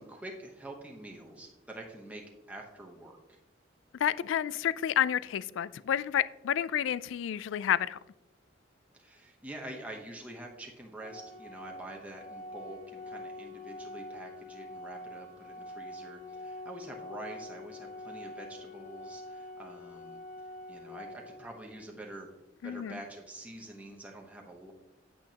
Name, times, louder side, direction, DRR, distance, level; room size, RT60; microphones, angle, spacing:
voice 1, 0.0-3.4 8.9-20.2 20.7-22.3 22.6-24.7, right 1 dB, 10° right, 0.9 m, -46 dB
voice 2, 4.0-8.0 22.6-23.0, left 9 dB, 75° left, 0.3 m, -30 dB
Organ, 11.0-22.0, left 1 dB, 45° left, 1.2 m, -45 dB
8.8 x 8.5 x 2.9 m
head